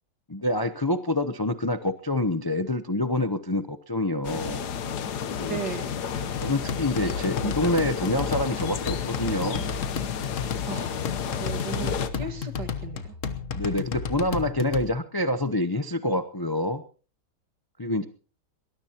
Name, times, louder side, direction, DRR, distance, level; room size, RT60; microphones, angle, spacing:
voice 1, 0.3-4.6 5.4-5.6 6.4-9.6 11.8-12.3 13.5-16.8 17.8-18.0, left 1 dB, 30° left, 10 dB, 0.4 m, -27 dB
sound 1, 4.2-12.1, left 7 dB, 75° left, 1.6 m, -32 dB
voice 2, 5.5-5.9 10.7-11.0 11.4-13.2, right 5 dB, 80° right, 8 dB, 2.5 m, -36 dB
sound 2, 6.1-14.9, left 6 dB, 50° left, 1.4 m, -33 dB
22.5 x 20.0 x 2.9 m, 0.39 s
omnidirectional pair, 1.8 m